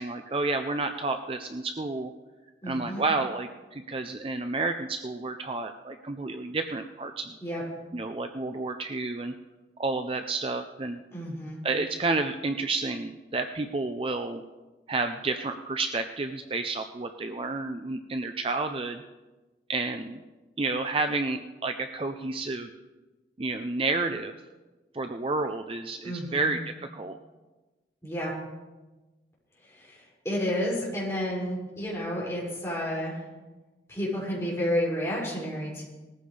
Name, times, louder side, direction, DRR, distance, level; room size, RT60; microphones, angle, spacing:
voice 1, 0.0-2.1 2.6-7.3 7.9-9.3 9.8-11.0 11.6-14.4 14.9-19.0 19.7-20.2 20.6-22.7 23.4-24.3 24.9-26.6 26.9-27.2, right 3 dB, 30° right, 7 dB, 0.5 m, -30 dB
voice 2, 2.6-3.0 7.4-7.6 11.1-11.6 26.0-26.5 28.0-28.3 29.6-33.3 33.9-35.8, equal, 15° left, -6 dB, 6.1 m, -31 dB
19.5 x 14.5 x 3.4 m, 1.2 s
head